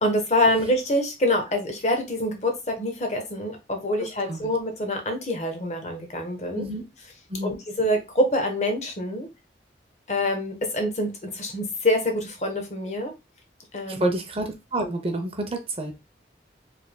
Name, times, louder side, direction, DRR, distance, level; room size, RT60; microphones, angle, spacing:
voice 1, 0.0-6.6 7.4-9.3 10.1-13.1 13.7-14.1, left 1 dB, 40° left, 4 dB, 1.0 m, -25 dB
voice 2, 6.5-6.8 7.3-7.6 13.9-16.0, right 1 dB, 30° right, 5 dB, 0.6 m, -29 dB
4.9 x 3.4 x 2.2 m, 0.24 s
head